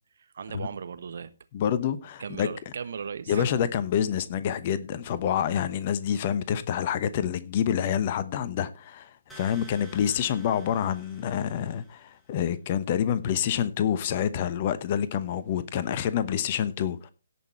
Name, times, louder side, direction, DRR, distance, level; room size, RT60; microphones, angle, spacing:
voice 1, 0.2-1.3 2.2-3.5, right 6 dB, 50° right, 1.2 m, -37 dB
voice 2, 1.5-2.5 3.3-17.1, left 9 dB, 35° left, 0.9 m, -27 dB
sound 1, 9.3-12.2, right 1 dB, ahead, 2.5 m, -51 dB
17.5 x 6.1 x 4.3 m
figure-of-eight pair, 135°, 0 cm